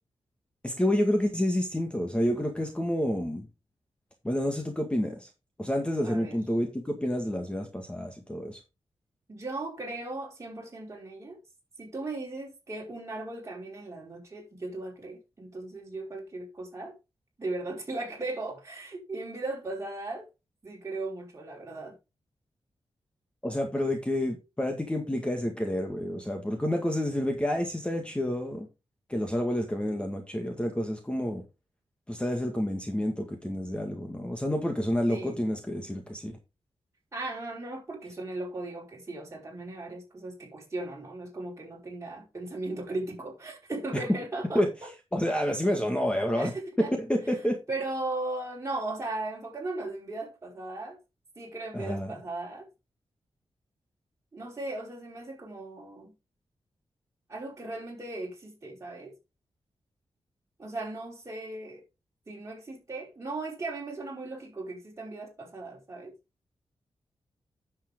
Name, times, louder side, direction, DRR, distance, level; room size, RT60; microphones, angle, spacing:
voice 1, 0.6-3.5 4.2-5.3 5.6-8.6 23.4-28.7 29.1-31.4 32.1-36.4 43.9-44.0 44.5-44.7 45.1-46.5 46.8-47.6 51.7-52.1, equal, 10° left, 1.8 m, -29 dB
voice 2, 6.0-6.4 9.3-11.4 11.8-16.9 17.4-20.3 20.6-21.9 35.1-35.4 37.1-44.9 46.3-46.9 47.7-51.0 51.3-52.7 54.3-56.1 57.3-59.1 60.6-61.8 62.3-66.1, right 2 dB, 30° right, 5.1 m, -37 dB
10.0 x 7.6 x 3.7 m
wide cardioid pair, 120°, 10 cm